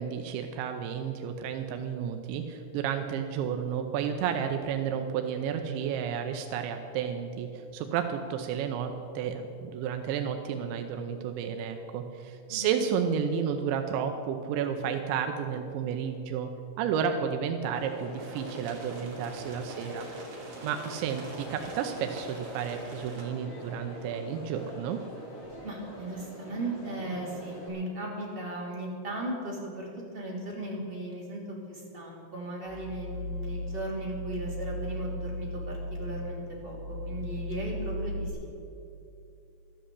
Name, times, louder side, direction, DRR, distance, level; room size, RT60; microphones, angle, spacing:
voice 1, 0.0-16.5 16.8-20.1 20.6-25.0, right 7 dB, 85° right, 5 dB, 2.8 m, -32 dB
voice 2, 12.5-12.8 25.6-29.9 30.1-38.5, right 1 dB, 20° right, -4 dB, 1.4 m, -37 dB
Crowd, 17.7-27.7, equal, 20° left, 2.7 m, -44 dB
sound 1, 18.1-23.2, right 2 dB, 40° right, 2.9 m, -47 dB
sound 2, 32.7-38.3, left 1 dB, 80° left, 5.0 m, -36 dB
13.0 x 10.5 x 8.4 m, 2.7 s
omnidirectional pair, 5.8 m